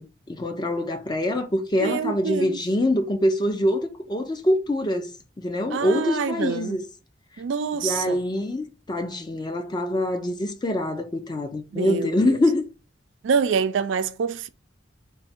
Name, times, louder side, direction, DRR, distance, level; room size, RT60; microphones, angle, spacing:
voice 1, 0.0-5.1 5.4-6.8 7.8-12.6, left 1 dB, 25° left, 0.5 m, -24 dB
voice 2, 1.8-2.6 5.7-6.8 7.4-8.2 11.7-12.4 13.2-14.5, right 6 dB, 85° right, 0.4 m, -26 dB
3.4 x 2.1 x 4.2 m
head